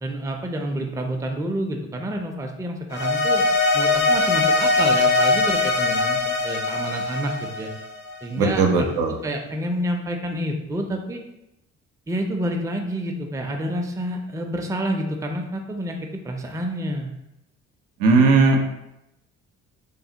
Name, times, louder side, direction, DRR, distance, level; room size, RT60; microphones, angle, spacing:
voice 1, 0.0-3.5 3.7-7.7 8.2-8.9 9.2-11.2 12.1-17.1, right 1 dB, 10° right, 2 dB, 0.4 m, -28 dB
sound 1, 2.9-8.2, left 3 dB, 55° left, 0.8 m, -21 dB
voice 2, 8.4-9.2 18.0-18.6, right 3 dB, 80° right, 2 dB, 0.5 m, -17 dB
3.2 x 2.0 x 2.8 m, 0.87 s
hypercardioid pair, 55°, 35 cm